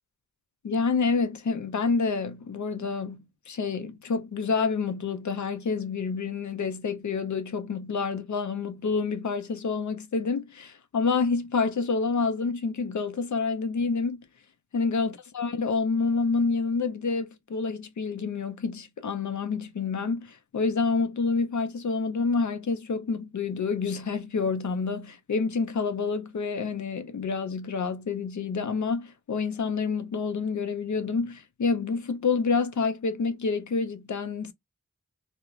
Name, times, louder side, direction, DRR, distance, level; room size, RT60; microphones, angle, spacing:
voice 1, 0.6-14.2 14.7-34.5, left 4 dB, 65° left, 0.5 m, -28 dB
2.9 x 2.1 x 2.3 m
wide cardioid pair, 55°, 32 cm